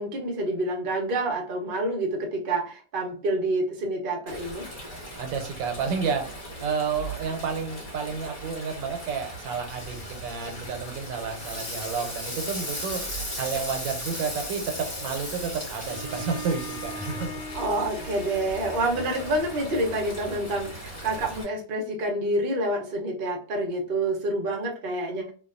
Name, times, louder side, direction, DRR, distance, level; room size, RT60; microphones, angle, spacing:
voice 1, 0.0-4.7 17.5-25.3, right 1 dB, 65° right, 1 dB, 0.5 m, -28 dB
Stream, 4.3-21.4, right 1 dB, 35° left, 0.9 m, -40 dB
voice 2, 5.2-13.0 13.3-17.3, right 5 dB, 90° right, 5 dB, 1.3 m, -31 dB
Frying (food), 9.7-19.4, left 2 dB, 50° left, 0.3 m, -38 dB
Bowed string instrument, 15.8-20.2, equal, 70° left, 1.1 m, -41 dB
2.9 x 2.3 x 2.4 m, 0.40 s
omnidirectional pair, 2.0 m